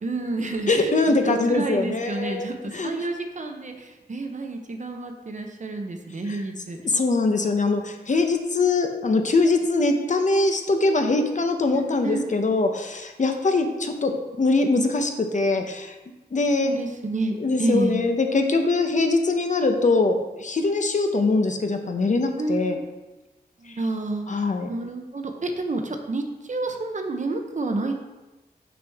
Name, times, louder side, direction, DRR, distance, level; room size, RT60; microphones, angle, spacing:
voice 1, 0.0-6.8 11.7-12.3 16.6-18.0 22.4-22.9 23.6-27.9, right 2 dB, 50° right, 4 dB, 0.7 m, -29 dB
voice 2, 0.7-2.9 6.3-6.4 6.8-14.1 14.4-16.0 16.3-16.7 17.4-22.8 24.3-24.7, left 3 dB, 50° left, 5 dB, 0.7 m, -22 dB
6.1 x 6.0 x 3.5 m, 1.1 s
wide cardioid pair, 115°, 16 cm